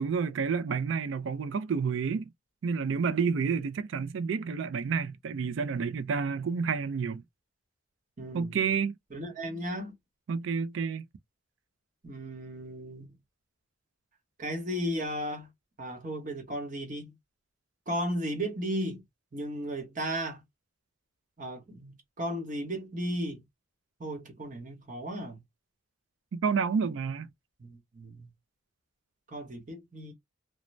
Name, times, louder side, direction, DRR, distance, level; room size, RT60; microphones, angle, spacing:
voice 1, 0.0-2.3 2.6-7.2 8.3-9.0 10.3-11.0 26.3-27.3, right 5 dB, 65° right, 0.3 m, -29 dB
voice 2, 8.2-8.6 9.1-9.9 12.0-13.1 14.4-15.5 15.8-17.2 17.9-19.0 19.3-20.4 21.4-23.4 24.0-25.4 27.6-28.3 29.3-30.1, equal, 40° right, 1.0 m, -35 dB
2.5 x 2.0 x 3.1 m
head